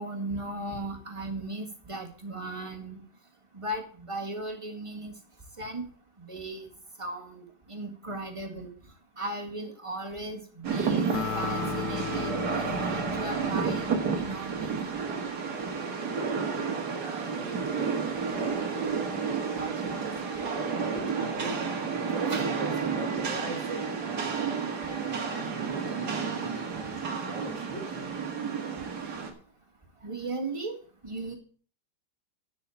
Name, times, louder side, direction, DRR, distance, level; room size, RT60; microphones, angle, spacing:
voice 1, 0.0-3.0 3.5-5.2 5.6-5.9 6.2-6.7 7.0-8.7 9.2-14.9 20.1-20.3 22.3-22.4 30.0-30.8 31.0-31.4, right 2 dB, 15° right, 3 dB, 1.8 m, -37 dB
Rain, 10.6-29.3, right 5 dB, 60° right, 2.2 m, -31 dB
Acoustic guitar, 11.1-14.7, left 9 dB, 65° left, 1.1 m, -36 dB
voice 2, 16.9-24.8 25.5-26.9 27.2-28.2, right 3 dB, 90° right, 1 dB, 3.2 m, -41 dB
sound 1, 18.1-28.2, left 9 dB, 35° left, 2.2 m, -50 dB
10.5 x 6.3 x 6.9 m, 0.43 s
omnidirectional pair, 2.0 m